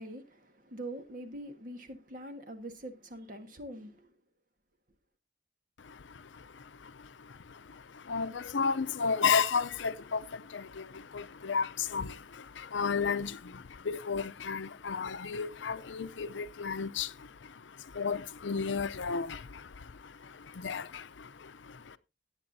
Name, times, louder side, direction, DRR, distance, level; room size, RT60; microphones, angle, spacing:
voice 1, 0.0-4.2, right 1 dB, 45° right, 1.5 m, -44 dB
voice 2, 5.8-22.0, left 5 dB, 90° left, 0.6 m, -34 dB
17.5 x 8.2 x 2.7 m
head